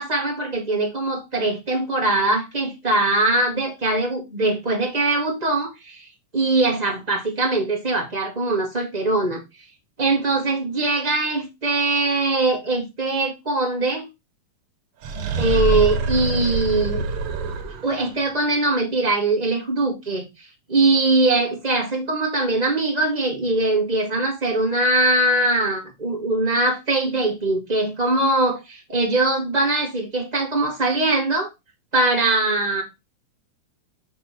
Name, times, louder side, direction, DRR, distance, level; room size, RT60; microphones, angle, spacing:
voice 1, 0.0-6.1 6.3-8.7 8.9-9.4 10.0-14.0 15.4-17.0 17.8-31.5 31.9-32.8, right 2 dB, 35° right, 0.6 m, -22 dB
sound 1, 15.0-18.0, right 4 dB, 75° right, 1.4 m, -25 dB
7.7 x 3.3 x 5.7 m
omnidirectional pair, 4.1 m